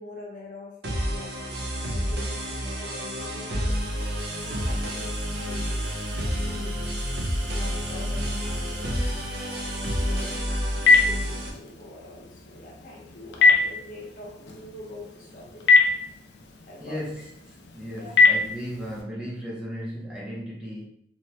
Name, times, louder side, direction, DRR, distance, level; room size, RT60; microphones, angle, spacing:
voice 1, 0.0-3.7 4.4-5.8 6.2-6.8 7.5-10.6 11.0-16.0 16.7-17.0 17.9-18.1, left 2 dB, 45° left, -3 dB, 0.8 m, -44 dB
sound 1, 0.8-11.5, equal, 60° right, 0.5 m, -29 dB
sound 2, 3.7-10.4, right 2 dB, 80° right, 0.9 m, -45 dB
Telephone, 10.2-19.0, left 4 dB, 70° left, 0.5 m, -24 dB
voice 2, 16.8-17.3 17.7-20.9, equal, 5° right, -6 dB, 0.5 m, -35 dB
3.0 x 2.2 x 2.8 m, 0.69 s
head